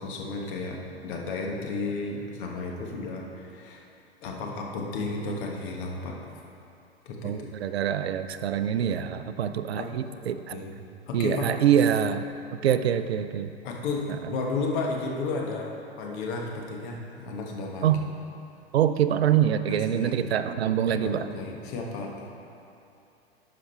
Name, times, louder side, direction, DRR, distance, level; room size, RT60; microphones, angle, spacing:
voice 1, 0.0-3.9 4.2-6.2 7.0-7.5 8.8-9.1 9.8-10.0 10.5-10.7 11.1-11.5 13.6-18.0 19.7-20.2 20.9-22.3, left 3 dB, 50° left, 0 dB, 1.4 m, -33 dB
voice 2, 7.2-10.6 11.1-12.3 12.6-13.5 17.8-18.0 18.7-21.3, right 9 dB, 70° right, 11 dB, 0.5 m, -25 dB
11.5 x 5.0 x 4.4 m, 2.7 s
figure-of-eight pair, 100°, 32 cm